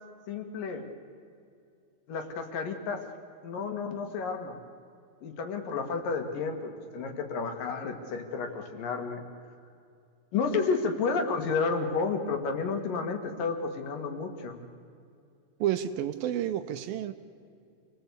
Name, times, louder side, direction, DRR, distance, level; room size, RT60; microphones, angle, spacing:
voice 1, 0.3-0.9 2.1-3.0 3.4-4.6 5.2-9.2 10.3-14.6, left 4 dB, 65° left, 6 dB, 3.2 m, -31 dB
voice 2, 15.6-17.1, right 11 dB, 75° right, 10 dB, 2.5 m, -30 dB
28.0 x 19.5 x 8.3 m, 2.5 s
omnidirectional pair, 4.5 m